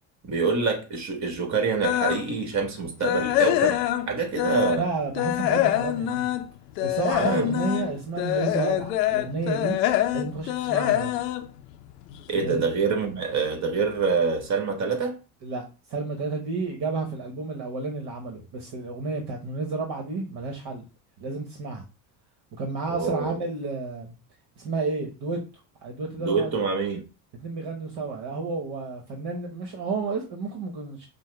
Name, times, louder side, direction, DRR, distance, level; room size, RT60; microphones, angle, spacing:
voice 1, 0.2-3.8 4.1-4.8 7.2-7.5 12.3-15.2 22.9-23.4 26.2-27.0, right 4 dB, 35° right, 1.5 m, -26 dB
sound 1, 1.8-2.3 2.7-4.9 5.2-12.4 12.7-13.0 13.5-13.6 14.0-14.1, left 13 dB, 90° left, 0.6 m, -25 dB
voice 2, 4.7-6.3 6.8-9.8 10.1-11.1 12.3-12.6 15.4-15.6 15.9-20.8 21.2-21.8 22.6-24.1 24.6-25.4 25.8-26.5 27.4-31.1, right 3 dB, 55° right, 1.2 m, -31 dB
5.4 x 2.2 x 3.2 m
hypercardioid pair, 70°, 47 cm